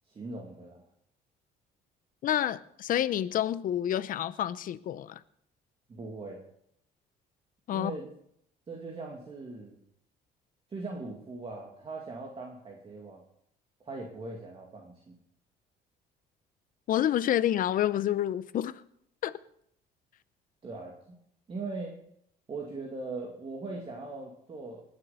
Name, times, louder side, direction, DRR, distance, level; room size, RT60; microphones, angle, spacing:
voice 1, 0.1-0.8 5.9-6.4 7.7-8.1 8.7-9.8 10.7-13.2 13.8-15.2 20.6-21.2 21.5-22.0 22.5-24.8, right 3 dB, 35° right, 2.2 m, -40 dB
voice 2, 2.2-5.2 7.7-7.9 16.9-18.8 19.2-19.3, left 11 dB, 55° left, 0.7 m, -28 dB
19.5 x 7.1 x 5.7 m
cardioid pair, 110°, 17 cm